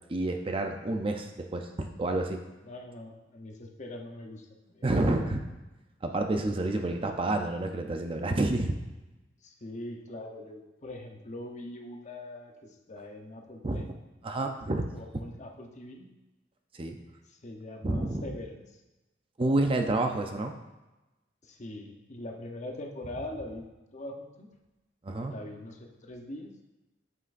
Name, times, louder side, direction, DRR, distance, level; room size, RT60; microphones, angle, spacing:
voice 1, 0.1-2.4 4.8-5.4 6.0-8.7 13.6-13.8 14.2-14.9 16.7-17.0 17.8-18.2 19.4-20.5 25.0-25.3, right 2 dB, 30° right, 4 dB, 0.5 m, -29 dB
voice 2, 2.6-4.9 5.2-5.3 9.4-13.9 14.9-16.1 17.3-18.8 21.4-23.6 23.9-24.5 25.2-26.7, left 1 dB, 40° left, 2 dB, 0.8 m, -42 dB
8.1 x 8.1 x 2.6 m, 1.0 s
head